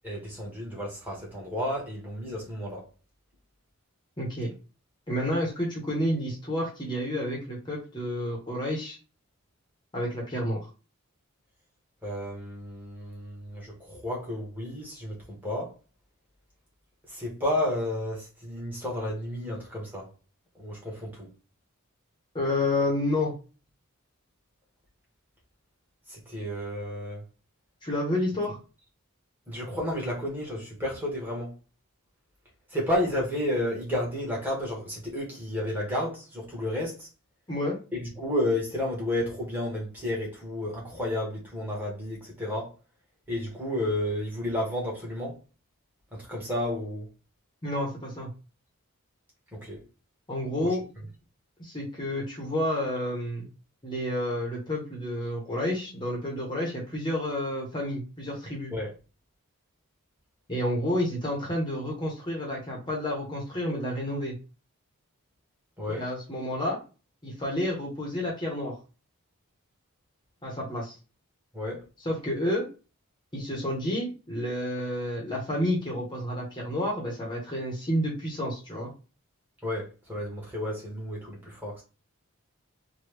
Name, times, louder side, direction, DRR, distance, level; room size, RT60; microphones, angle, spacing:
voice 1, 0.0-2.8 12.0-15.7 17.1-20.1 20.5-21.3 26.1-27.2 29.5-31.5 32.7-37.1 37.9-42.7 43.3-45.4 46.1-47.1 49.5-49.8 50.6-50.8 58.7-58.9 65.8-66.0 71.5-71.8 79.6-81.8, left 1 dB, 10° right, 1.1 m, -32 dB
voice 2, 4.2-4.5 5.1-9.0 9.9-10.6 22.3-23.3 27.8-28.6 37.5-37.8 47.6-48.3 50.3-50.8 51.6-53.5 53.8-58.7 60.5-64.3 65.9-66.8 67.2-68.7 70.4-71.0 72.0-72.6 73.3-78.9, left 1 dB, 20° left, 0.8 m, -30 dB
3.0 x 2.2 x 3.2 m
head